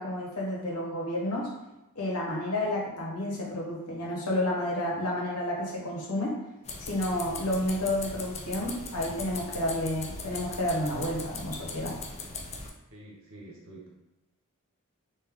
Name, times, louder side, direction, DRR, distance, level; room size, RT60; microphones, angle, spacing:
voice 1, 0.0-1.5 2.0-6.3 6.8-11.9, left 1 dB, 80° left, -3 dB, 1.1 m, -30 dB
sound 1, 6.6-12.7, left 3 dB, 30° left, 0.4 m, -39 dB
voice 2, 12.9-13.9, right 1 dB, 65° right, -3 dB, 1.2 m, -47 dB
3.5 x 2.6 x 3.6 m, 0.98 s
head